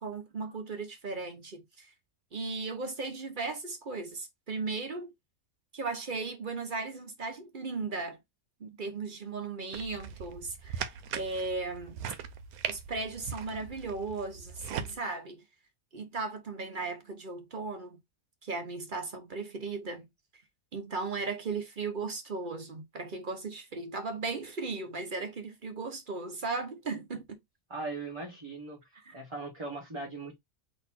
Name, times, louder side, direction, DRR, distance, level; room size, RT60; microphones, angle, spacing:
voice 1, 0.0-1.9 2.3-5.1 5.7-8.2 8.6-12.0 12.7-15.4 15.9-18.0 18.4-20.1 20.7-27.4 29.0-29.2, right 3 dB, 45° right, 0.8 m, -36 dB
sound 1, 9.7-14.9, right 8 dB, 85° right, 1.1 m, -40 dB
voice 2, 27.7-28.8 29.1-30.4, right 3 dB, 20° right, 1.2 m, -39 dB
4.0 x 2.8 x 4.5 m
omnidirectional pair, 1.5 m